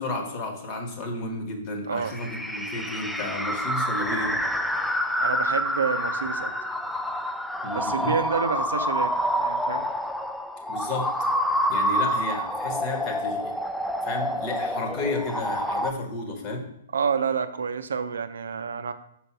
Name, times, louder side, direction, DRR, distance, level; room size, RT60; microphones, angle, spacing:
voice 1, 0.0-4.4 7.6-8.2 10.7-11.1 11.7-13.5 14.0-16.7, left 2 dB, 35° left, 3 dB, 1.3 m, -32 dB
voice 2, 1.9-2.2 5.2-6.5 7.7-9.9 16.9-18.9, right 6 dB, 75° right, 10 dB, 0.5 m, -28 dB
sound 1, 2.1-15.9, equal, ahead, 0.3 m, -27 dB
5.2 x 4.4 x 4.6 m, 0.75 s
hypercardioid pair, 120°, 0 cm